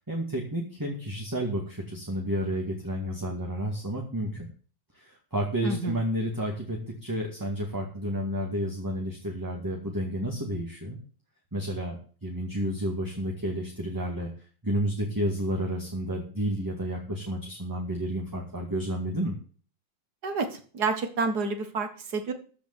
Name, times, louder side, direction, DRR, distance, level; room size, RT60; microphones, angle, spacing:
voice 1, 0.1-4.5 4.9-11.0 11.5-14.3 14.6-19.4, equal, 10° right, 0 dB, 1.9 m, -31 dB
voice 2, 5.6-6.0 20.2-22.3, right 4 dB, 55° right, 7 dB, 2.0 m, -29 dB
13.5 x 5.1 x 8.0 m, 0.42 s
omnidirectional pair, 2.1 m